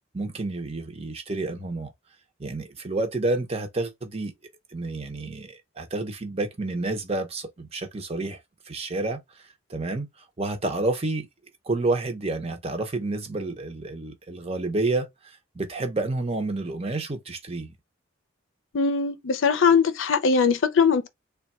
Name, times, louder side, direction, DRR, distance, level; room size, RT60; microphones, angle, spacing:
voice 1, 0.1-1.9 2.4-4.3 4.7-11.3 11.6-17.7, right 2 dB, 30° right, 0.7 m, -30 dB
voice 2, 18.7-21.1, left 5 dB, 70° left, 0.5 m, -21 dB
3.4 x 2.3 x 4.1 m
head